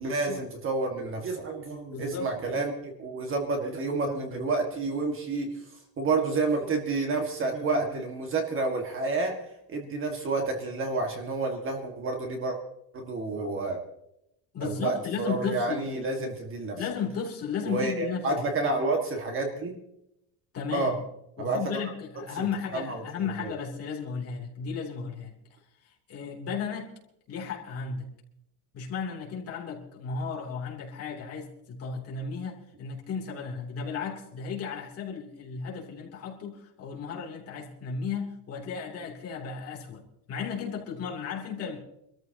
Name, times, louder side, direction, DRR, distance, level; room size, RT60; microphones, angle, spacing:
voice 1, 0.0-5.5 6.0-9.4 9.7-12.6 12.9-13.8 14.6-16.8 17.7-19.8 20.7-20.9 21.4-21.8 22.7-23.0, right 3 dB, 30° right, 1.9 m, -29 dB
voice 2, 1.9-2.6 14.5-15.9 16.7-18.8 20.5-21.0 21.4-27.0 27.3-28.1 28.7-41.8, left 6 dB, 35° left, 3.1 m, -35 dB
25.5 x 14.0 x 2.9 m
cardioid pair, 170°, 44 cm